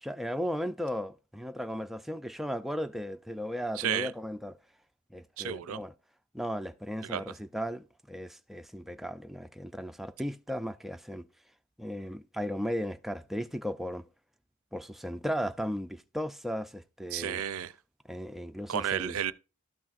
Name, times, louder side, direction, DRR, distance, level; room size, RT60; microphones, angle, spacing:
voice 1, 0.0-4.6 5.1-5.9 6.3-11.3 11.8-14.0 14.7-17.4 18.1-19.2, equal, ahead, 0.4 m, -36 dB
voice 2, 3.8-4.1 5.4-5.8 7.0-7.3 17.1-17.7 18.7-19.3, right 9 dB, 85° right, 0.4 m, -32 dB
13.0 x 6.0 x 2.5 m
head